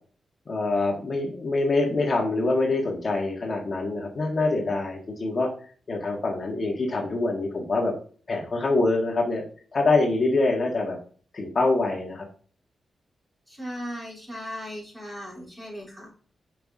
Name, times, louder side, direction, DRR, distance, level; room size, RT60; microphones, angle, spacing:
voice 1, 0.5-5.5 5.9-7.9 8.3-9.4 9.7-11.0 11.3-12.2, left 2 dB, 40° left, -1 dB, 1.7 m, -25 dB
voice 2, 13.5-16.1, equal, 15° right, -4 dB, 3.2 m, -37 dB
5.9 x 5.6 x 3.6 m, 0.42 s
wide cardioid pair, 130°, 0 cm